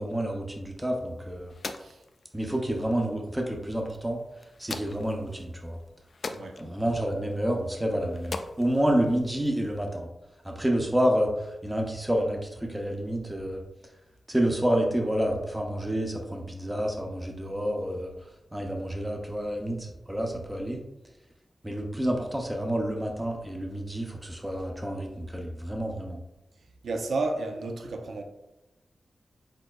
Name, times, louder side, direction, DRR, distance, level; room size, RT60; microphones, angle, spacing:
voice 1, 0.0-1.5 2.3-4.2 4.6-5.8 6.6-10.1 10.4-13.6 14.3-20.8 21.6-26.2, equal, 10° right, 0.6 m, -29 dB
sound 1, 0.8-9.8, left 3 dB, 50° left, 0.3 m, -44 dB
voice 2, 26.8-28.2, right 3 dB, 80° right, 0.5 m, -31 dB
4.7 x 4.4 x 2.3 m
wide cardioid pair, 125°, 0 cm